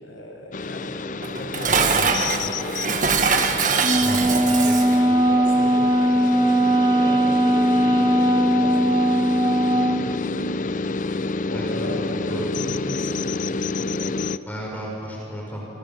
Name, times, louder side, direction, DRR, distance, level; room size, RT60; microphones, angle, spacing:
voice 1, 0.0-3.0 4.1-9.0 9.6-10.2 11.5-14.3, equal, 80° left, 0 dB, 7.7 m, -36 dB
sound 1, 0.5-14.4, left 3 dB, 40° left, 0.5 m, -29 dB
Dishes pots and pans, 1.2-5.0, right 5 dB, 40° right, 1.6 m, -22 dB
voice 2, 1.7-2.2 4.0-5.0 11.5-11.6 12.3-12.5 14.5-15.8, equal, 10° left, -3 dB, 6.0 m, -34 dB
Wind instrument woodwind instrument, 3.8-10.1, right 1 dB, 25° right, 1.4 m, -19 dB
29.0 x 26.0 x 7.5 m, 2.9 s
head